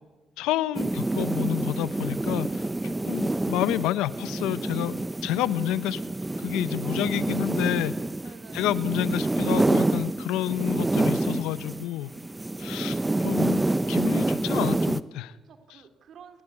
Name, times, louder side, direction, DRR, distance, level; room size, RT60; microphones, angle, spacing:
voice 1, 0.4-2.6 3.1-6.0 6.4-7.9 8.5-12.1 12.6-13.0 13.2-13.6 13.9-15.3, left 14 dB, 85° left, 16 dB, 0.9 m, -29 dB
sound 1, 0.7-11.9 12.1-15.0, right 2 dB, 15° right, 1.0 m, -27 dB
voice 2, 2.8-3.1 6.8-7.7 8.2-8.7 11.7-11.9 12.6-13.1 15.3-16.4, right 6 dB, 65° right, 6 dB, 3.8 m, -51 dB
30.0 x 22.0 x 8.5 m, 1.2 s
supercardioid pair, 65°, 0 cm